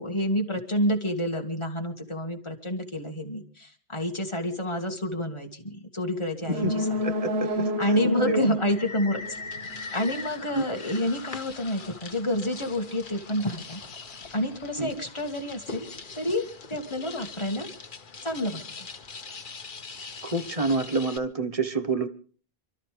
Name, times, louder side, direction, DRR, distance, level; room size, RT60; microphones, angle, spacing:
voice 1, 0.0-7.0 7.8-9.2 9.9-13.8 14.3-15.9 16.1-17.7 18.2-18.9, left 1 dB, 30° left, 3 dB, 2.2 m, -29 dB
sound 1, 6.4-10.1 10.4-10.5, equal, 85° right, 1.7 m, -30 dB
sound 2, 8.1-17.4, left 4 dB, 85° left, 1.7 m, -44 dB
voice 2, 8.2-8.5 10.5-10.6 14.8-14.9 20.2-22.1, right 2 dB, 35° right, 9 dB, 1.3 m, -27 dB
sound 3, 9.2-21.2, left 4 dB, 55° left, 1.2 m, -43 dB
28.5 x 12.5 x 3.4 m, 0.39 s
omnidirectional pair, 1.0 m